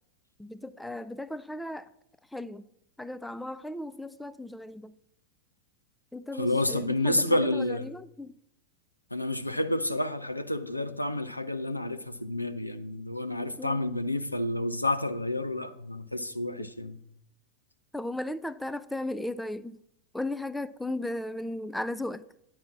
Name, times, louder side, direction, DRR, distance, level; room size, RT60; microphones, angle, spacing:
voice 1, 0.4-1.9 2.3-2.6 3.0-4.9 6.1-8.3 13.6-13.9 16.6-16.7 17.9-19.8 20.1-22.2, left 1 dB, 5° left, 0.4 m, -36 dB
voice 2, 6.4-7.9 9.1-17.0, left 1 dB, 85° left, 0.6 m, -29 dB
9.7 x 5.5 x 7.1 m
figure-of-eight pair, 90°, 0 cm